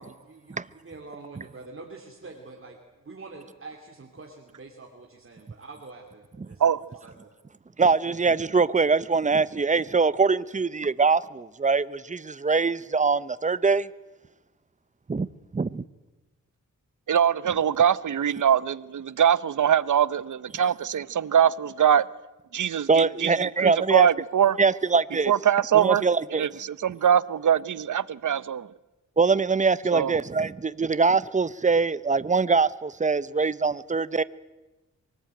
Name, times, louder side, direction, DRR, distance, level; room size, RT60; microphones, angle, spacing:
voice 1, 0.0-6.6 7.0-7.3, right 3 dB, 45° right, 2.9 m, -45 dB
voice 2, 7.8-13.9 15.1-15.3 15.5-15.8 22.9-24.1 24.6-25.3 25.7-26.4 29.2-34.2, right 4 dB, 25° right, 0.7 m, -23 dB
voice 3, 17.1-22.1 22.5-24.6 25.3-26.0 26.3-28.7 29.9-30.2, right 9 dB, 75° right, 0.8 m, -23 dB
24.0 x 19.0 x 9.0 m
wide cardioid pair, 95°, 31 cm